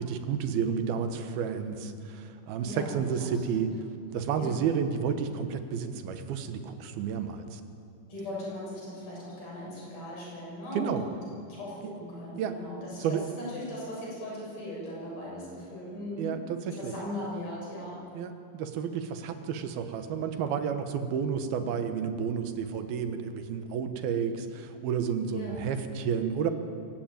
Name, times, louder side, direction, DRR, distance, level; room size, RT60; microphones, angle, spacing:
voice 1, 0.0-3.7 4.1-7.6 10.7-11.0 11.8-11.9 12.4-12.6 13.0-13.2 16.2-16.9 18.1-26.5, right 7 dB, 80° right, 8 dB, 3.1 m, -31 dB
voice 2, 2.6-3.6 4.3-4.6 8.1-11.2 11.5-16.3 16.6-18.1 25.3-25.6, left 1 dB, 70° left, -5 dB, 8.9 m, -39 dB
24.5 x 15.0 x 9.3 m, 2.5 s
omnidirectional pair, 4.4 m